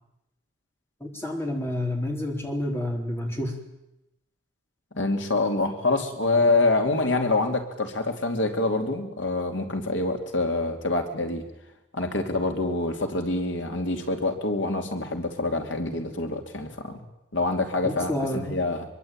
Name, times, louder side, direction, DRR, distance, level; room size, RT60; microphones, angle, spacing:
voice 1, 1.0-3.6 17.8-18.6, left 1 dB, 10° left, 1 dB, 4.2 m, -29 dB
voice 2, 4.9-11.4 11.9-17.0 17.3-18.8, left 2 dB, 70° left, 4 dB, 3.0 m, -26 dB
24.5 x 23.5 x 9.0 m, 0.89 s
head